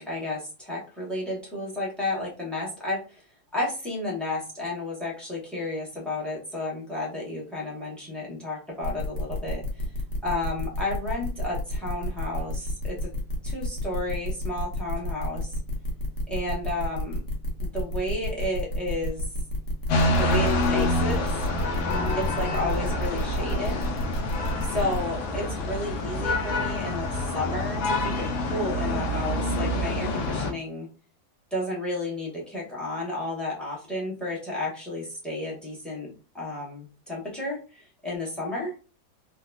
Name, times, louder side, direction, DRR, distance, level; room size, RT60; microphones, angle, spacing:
voice 1, 0.0-3.2 3.5-9.8 10.2-13.1 13.4-15.5 16.3-17.2 17.7-19.2 20.1-21.4 22.2-23.9 24.6-30.9 31.5-36.1 36.3-38.7, left 1 dB, ahead, -4 dB, 0.6 m, -32 dB
sound 1, 8.8-25.0, equal, 65° left, 1.3 m, -31 dB
sound 2, 19.9-30.5, left 1 dB, 80° left, 1.3 m, -27 dB
3.7 x 2.1 x 2.3 m, 0.35 s
omnidirectional pair, 2.1 m